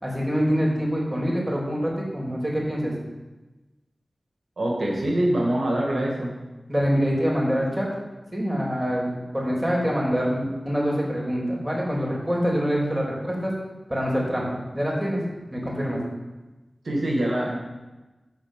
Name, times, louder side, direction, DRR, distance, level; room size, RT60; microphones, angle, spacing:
voice 1, 0.0-2.9 6.7-7.9 8.3-13.5 13.9-15.2 15.5-16.0, equal, 15° right, -3 dB, 3.6 m, -25 dB
voice 2, 4.6-6.3 16.8-17.6, right 1 dB, 85° right, -2 dB, 2.0 m, -24 dB
11.5 x 4.3 x 7.5 m, 1.1 s
cardioid pair, 40°, 0 cm